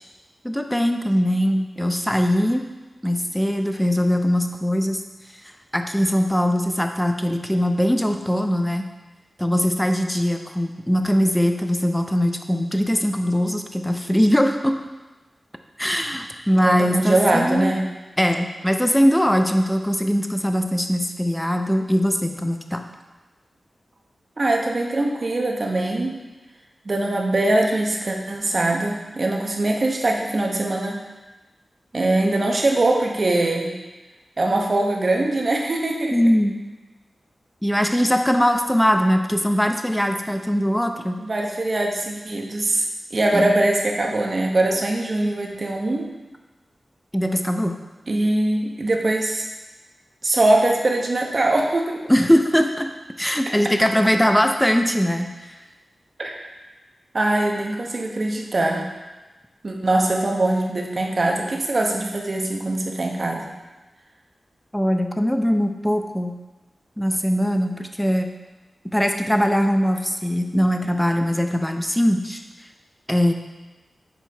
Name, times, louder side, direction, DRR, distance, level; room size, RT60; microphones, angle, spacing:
voice 1, 0.4-2.6 3.0-5.0 5.7-8.9 9.4-14.8 15.8-17.7 18.2-22.8 36.1-36.6 37.6-41.2 43.3-43.5 47.1-47.8 52.1-52.9 53.2-55.5 64.7-66.4 67.0-68.3 68.9-72.4 73.1-73.3, equal, 5° left, 5 dB, 0.6 m, -21 dB
voice 2, 16.6-17.9 24.4-26.2 26.8-31.0 31.9-33.8 34.4-36.2 41.2-42.9 43.1-46.1 48.1-49.4 50.2-52.0 56.2-56.5 57.1-58.8 59.6-63.5, right 2 dB, 55° right, 1 dB, 0.9 m, -22 dB
7.1 x 4.5 x 3.4 m, 1.2 s
cardioid pair, 45°, 0 cm